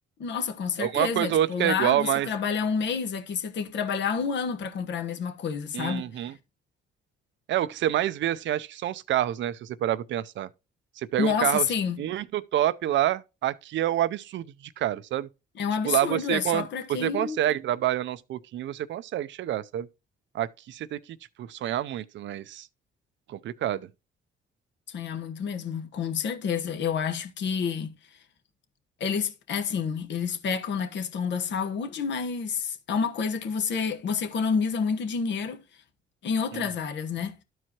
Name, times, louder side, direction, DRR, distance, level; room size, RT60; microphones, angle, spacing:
voice 1, 0.2-6.3 11.2-12.0 15.6-17.4 24.9-27.9 29.0-35.7 36.2-37.4, left 6 dB, 65° left, 1.1 m, -29 dB
voice 2, 0.8-2.3 5.7-6.3 7.5-10.5 11.0-11.7 12.0-15.3 15.8-19.9 20.3-21.0 21.4-22.7 23.3-23.9 36.5-36.7, right 12 dB, 70° right, 0.5 m, -27 dB
12.5 x 4.6 x 2.9 m
cardioid pair, 90°, 20 cm